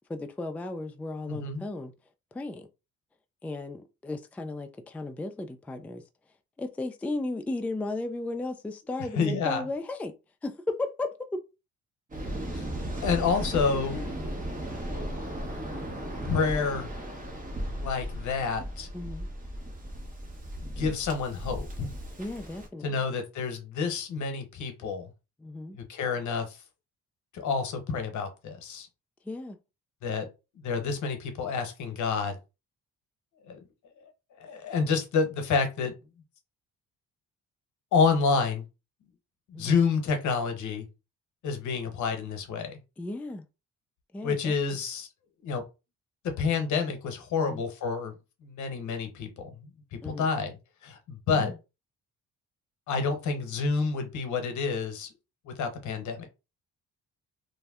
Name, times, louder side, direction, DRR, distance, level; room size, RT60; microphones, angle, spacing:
voice 1, 0.1-1.9 2.3-2.7 3.4-6.0 6.6-10.1 10.4-11.4 13.9-14.1 18.9-19.3 22.2-23.0 25.4-25.8 29.2-29.6 39.5-39.8 43.0-43.5 44.1-44.5 47.3-47.6 50.0-50.3 51.3-51.6, left 2 dB, 5° left, 0.3 m, -35 dB
voice 2, 1.3-1.7 9.2-9.6 12.5-12.7 13.0-14.0 16.2-16.9 17.8-18.9 20.8-21.9 22.8-25.1 25.7-26.6 27.3-28.9 30.0-30.3 30.5-32.4 33.5-33.6 34.4-35.9 37.9-38.6 39.5-40.9 41.4-42.7 44.2-45.1 45.4-45.6 46.2-48.1 48.4-50.5 50.8-51.5 52.9-55.1 55.5-56.3, left 5 dB, 70° left, 0.9 m, -29 dB
Waves surf, 12.1-22.7, right 1 dB, 25° right, 1.2 m, -36 dB
2.5 x 2.2 x 3.5 m
cardioid pair, 90°, 30 cm